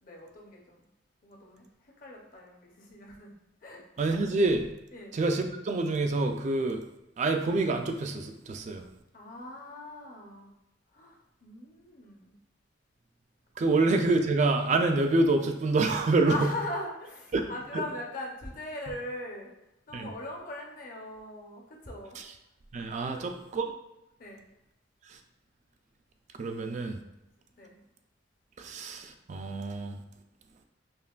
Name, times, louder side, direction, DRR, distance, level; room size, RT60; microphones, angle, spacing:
voice 1, 0.0-0.8 1.2-3.8 4.9-5.2 9.1-10.5 10.9-12.3 13.7-13.8 16.3-19.5 19.9-22.2 23.1-23.3 24.2-24.4 27.6-27.8, left 2 dB, 45° left, -1 dB, 0.7 m, -40 dB
voice 2, 4.0-4.7 5.1-6.8 7.2-8.8 13.6-16.4 17.3-17.5 19.9-20.1 22.7-23.6 26.4-27.0 28.6-29.9, right 3 dB, 40° right, 5 dB, 0.3 m, -27 dB
5.5 x 2.2 x 2.4 m, 0.89 s
head